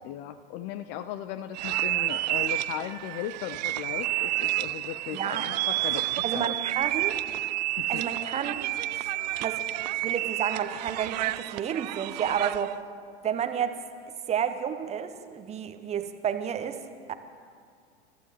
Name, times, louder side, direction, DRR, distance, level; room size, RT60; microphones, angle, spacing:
voice 1, 0.0-6.6 7.8-8.0, left 11 dB, 30° left, 12 dB, 0.4 m, -37 dB
sound 1, 1.5-12.7, right 17 dB, 40° right, 0.4 m, -30 dB
voice 2, 5.1-5.5 6.2-7.2 7.9-8.6 9.4-9.6 10.0-12.8 13.2-13.8 14.3-17.1, right 8 dB, 20° right, 9 dB, 0.9 m, -31 dB
28.5 x 14.0 x 3.1 m, 2.1 s
figure-of-eight pair, 90°, 33 cm